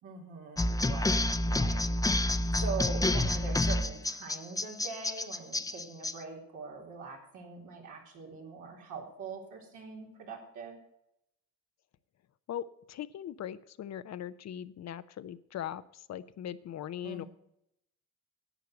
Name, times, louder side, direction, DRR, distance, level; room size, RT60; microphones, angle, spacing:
voice 1, 0.0-1.9 2.2-10.8 17.0-17.3, right 4 dB, 85° right, 0 dB, 3.7 m, -43 dB
sound 1, 0.6-6.1, left 1 dB, 10° left, 0.7 m, -29 dB
voice 2, 12.5-17.2, left 10 dB, 60° left, 13 dB, 0.7 m, -40 dB
11.0 x 8.1 x 7.9 m, 0.79 s
cardioid pair, 90°, 30 cm